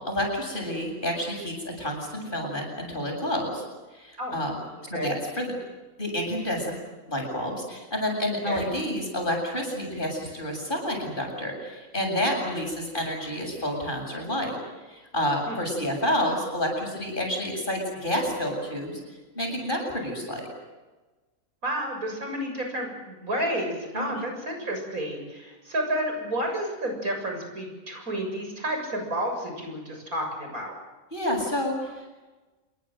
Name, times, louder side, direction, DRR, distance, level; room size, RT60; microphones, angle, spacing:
voice 1, 0.0-3.6 3.9-4.5 4.9-5.5 6.0-6.8 7.1-14.6 14.8-19.0 19.3-20.5 23.9-24.3 31.1-32.1, left 1 dB, 35° left, 2 dB, 8.0 m, -29 dB
voice 2, 21.6-30.7, right 1 dB, 90° right, 3 dB, 7.5 m, -31 dB
28.0 x 22.0 x 7.8 m, 1.2 s
omnidirectional pair, 1.5 m